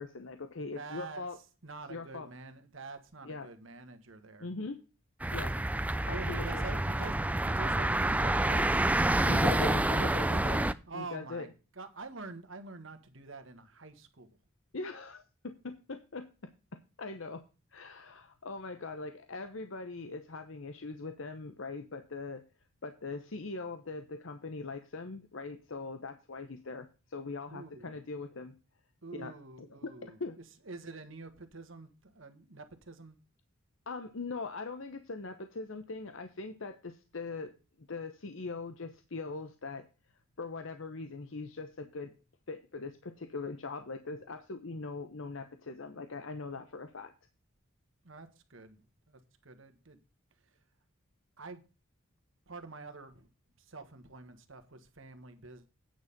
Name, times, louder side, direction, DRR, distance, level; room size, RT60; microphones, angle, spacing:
voice 1, 0.0-1.4 1.9-2.3 3.2-3.5 4.4-4.8 5.3-5.6 6.1-6.6 9.3-11.5 14.7-17.4 17.7-22.4 22.8-28.5 29.1-29.3 29.6-30.4 33.9-39.9 40.4-42.1 42.5-47.1, left 3 dB, 70° left, 0.9 m, -41 dB
voice 2, 0.7-1.2 1.6-4.5 6.1-8.8 10.9-14.3 27.5-27.9 29.0-30.2 30.6-33.2 48.0-48.8 49.1-50.0 51.4-51.7 52.5-53.3 53.6-55.6, right 3 dB, 65° right, 1.6 m, -46 dB
sound 1, 5.2-10.7, right 1 dB, 5° right, 0.4 m, -28 dB
9.4 x 6.6 x 5.3 m
head